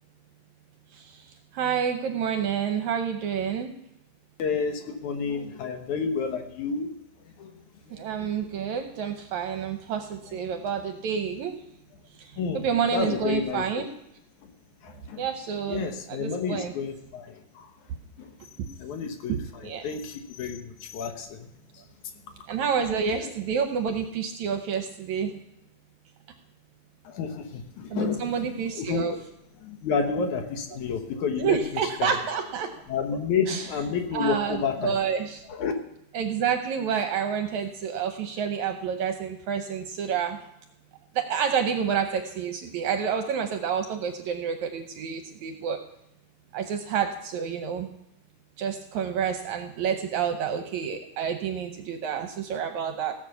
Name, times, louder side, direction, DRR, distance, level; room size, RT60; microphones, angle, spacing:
voice 1, 1.5-3.8 7.9-11.6 12.5-13.9 15.2-16.7 19.3-19.8 22.5-25.3 27.9-29.1 31.4-32.7 33.5-33.7 34.1-35.4 36.1-40.4 41.2-45.8 46.5-47.9 48.6-53.2, right 7 dB, 70° right, 6 dB, 1.9 m, -29 dB
voice 2, 4.4-6.9 7.4-7.5 12.4-12.6 12.9-13.6 14.8-15.2 15.7-17.7 18.2-18.3 18.8-21.5 27.1-28.3 28.7-29.2 29.6-31.6 32.0-32.1 32.9-34.9 35.5-35.7, left 5 dB, 65° left, 5 dB, 2.3 m, -30 dB
17.5 x 7.0 x 6.9 m, 0.84 s
omnidirectional pair, 4.0 m